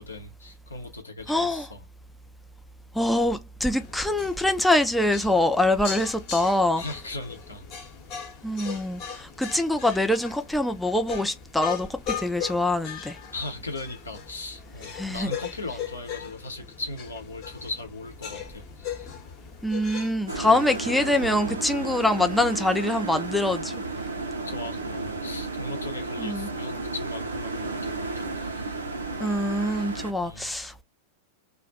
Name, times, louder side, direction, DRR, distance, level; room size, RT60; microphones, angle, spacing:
voice 1, 0.0-1.8 6.8-7.9 13.3-19.2 24.4-28.8 30.2-30.5, left 2 dB, 75° left, 0.7 m, -38 dB
voice 2, 1.3-1.7 2.9-6.8 8.4-13.2 14.9-15.3 19.6-23.8 26.2-26.5 29.2-30.8, left 1 dB, 5° left, 0.3 m, -24 dB
sound 1, 3.7-20.9, left 8 dB, 40° left, 0.8 m, -39 dB
sound 2, 20.3-30.1, right 3 dB, 75° right, 0.5 m, -33 dB
2.3 x 2.1 x 2.6 m
figure-of-eight pair, 90°, 0 cm